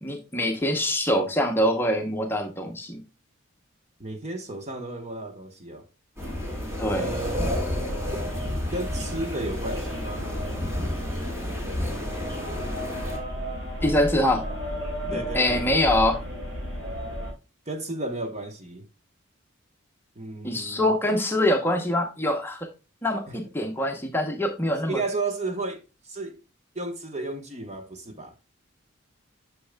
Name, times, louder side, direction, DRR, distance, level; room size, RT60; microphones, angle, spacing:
voice 1, 0.0-3.0 6.8-7.1 13.8-14.4 15.1-16.2 20.4-22.6 23.0-25.0, left 1 dB, 10° left, 0.8 m, -24 dB
voice 2, 4.0-5.9 6.9-7.7 8.1-8.2 8.7-10.3 15.1-15.7 17.7-18.9 20.2-20.9 23.3-23.4 24.9-26.4 26.7-28.3, right 2 dB, 35° right, 1.0 m, -33 dB
sound 1, 6.2-13.2, left 1 dB, 15° right, 1.6 m, -32 dB
sound 2, 6.2-17.3, equal, 75° right, 3.8 m, -33 dB
8.4 x 6.3 x 2.2 m
head